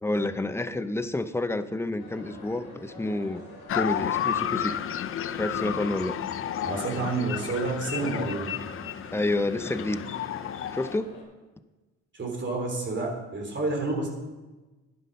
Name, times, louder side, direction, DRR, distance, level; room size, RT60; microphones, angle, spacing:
voice 1, 0.0-4.8 5.3-6.2 9.1-10.0 10.7-11.2, left 2 dB, 10° left, 11 dB, 0.7 m, -29 dB
sound 1, 2.0-11.2, left 2 dB, 85° left, 3.2 m, -47 dB
sound 2, 3.7-11.0, left 9 dB, 45° left, 0.5 m, -32 dB
voice 2, 6.6-8.5 12.1-14.1, right 3 dB, 40° right, 0 dB, 3.5 m, -29 dB
11.0 x 9.2 x 5.5 m, 1.2 s
cardioid pair, 90°, 30 cm